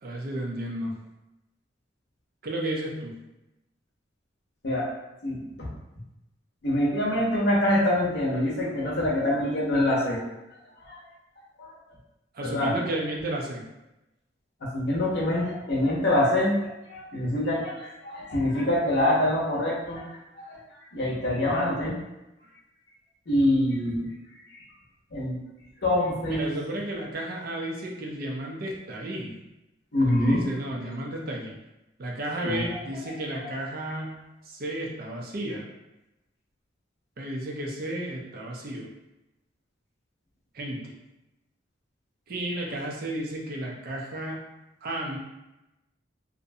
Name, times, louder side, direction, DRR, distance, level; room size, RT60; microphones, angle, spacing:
voice 1, 0.0-1.0 2.4-3.2 12.3-13.6 26.3-29.3 30.0-31.6 32.0-34.2 34.4-35.7 37.2-38.9 40.5-40.9 42.3-44.4 44.8-45.2, right 1 dB, 50° right, -1 dB, 0.5 m, -33 dB
voice 2, 5.2-5.7 6.6-10.2 10.8-11.0 11.6-11.7 12.4-12.7 14.6-20.1 20.4-20.6 20.9-22.0 23.3-24.1 24.5-24.6 25.1-25.4 25.8-26.5 29.9-30.4 32.4-32.6 33.4-33.5, left 1 dB, 60° left, -4 dB, 0.7 m, -25 dB
2.6 x 2.1 x 2.6 m, 0.95 s
head